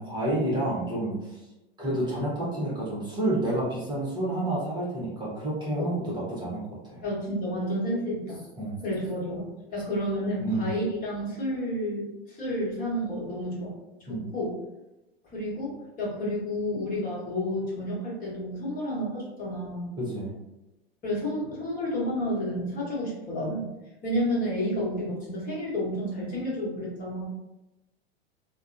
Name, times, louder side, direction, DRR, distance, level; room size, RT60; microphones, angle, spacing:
voice 1, 0.0-1.4 1.8-7.0 8.6-8.8 10.4-10.7 14.1-14.2 20.0-20.3, right 1 dB, 15° right, -8 dB, 1.1 m, -29 dB
voice 2, 7.0-8.4 8.8-13.7 14.1-14.6 15.3-19.9 21.0-23.7 24.0-27.3, equal, 25° left, -6 dB, 1.4 m, -30 dB
3.4 x 2.2 x 2.6 m, 0.98 s
figure-of-eight pair, 90°, 31 cm